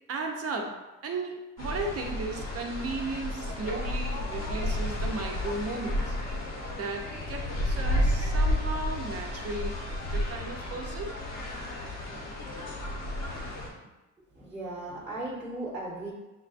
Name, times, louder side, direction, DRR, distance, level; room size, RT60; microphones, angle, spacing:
voice 1, 0.1-6.2 6.7-11.2, right 3 dB, 50° right, 2 dB, 0.7 m, -35 dB
sound 1, 1.6-13.7, left 1 dB, 60° left, 1.1 m, -32 dB
voice 2, 14.3-16.1, right 2 dB, 5° right, -6 dB, 1.1 m, -36 dB
6.5 x 2.3 x 2.5 m, 1.1 s
cardioid pair, 90°, 30 cm